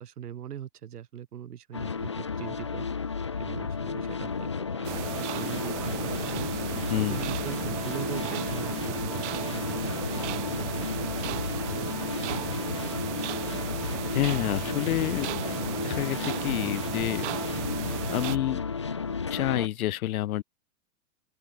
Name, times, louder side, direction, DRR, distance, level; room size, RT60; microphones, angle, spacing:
voice 1, 0.0-2.9 3.4-6.5 7.0-11.9, right 10 dB, 85° right, 6.3 m, -41 dB
sound 1, 1.7-19.7, left 5 dB, 25° left, 0.3 m, -33 dB
sound 2, 4.8-18.4, right 16 dB, 50° right, 1.6 m, -35 dB
voice 2, 14.1-15.4 15.8-17.3 18.1-18.7 19.3-20.4, left 14 dB, 70° left, 1.0 m, -28 dB
open air
supercardioid pair, 160°, 45 cm